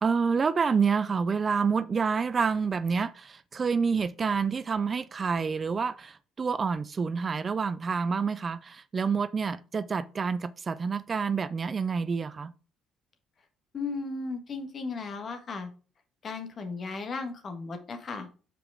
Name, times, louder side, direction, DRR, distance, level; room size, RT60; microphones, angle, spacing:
voice 1, 0.0-12.5, right 5 dB, 35° right, 0.4 m, -28 dB
voice 2, 13.7-15.7 16.2-18.3, left 4 dB, 45° left, 1.6 m, -35 dB
6.0 x 4.9 x 4.8 m
supercardioid pair, 85°, 0 cm